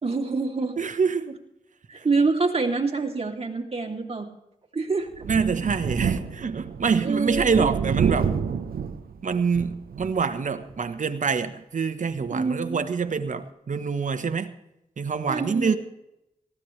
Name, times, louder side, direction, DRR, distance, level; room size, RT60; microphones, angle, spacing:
voice 1, 0.0-0.7 1.9-4.3 4.7-5.2 7.0-7.7 12.3-12.8 15.3-15.8, right 4 dB, 40° right, 3.1 m, -26 dB
voice 2, 0.8-1.4 2.0-2.1 5.2-8.4 9.2-14.5 15.0-15.8, right 5 dB, 55° right, 1.3 m, -26 dB
Thunder, 5.1-10.3 10.7-10.8 12.1-12.2, right 6 dB, 80° right, 1.0 m, -28 dB
18.5 x 14.5 x 3.3 m
cardioid pair, 50°, 15 cm